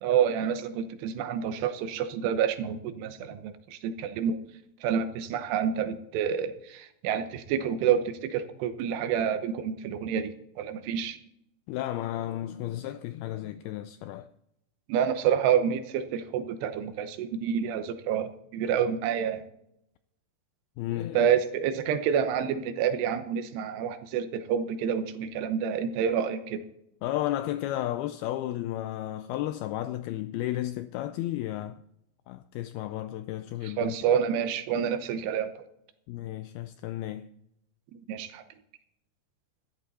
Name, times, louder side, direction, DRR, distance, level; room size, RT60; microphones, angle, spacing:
voice 1, 0.0-4.4 4.8-11.2 14.9-19.4 21.1-26.6 33.6-35.5 37.9-38.4, right 8 dB, 80° right, 3.0 m, -28 dB
voice 2, 11.7-14.3 20.8-21.3 27.0-31.8 32.3-33.9 36.1-37.3, left 14 dB, 85° left, 2.2 m, -33 dB
13.5 x 12.0 x 4.2 m
omnidirectional pair, 4.9 m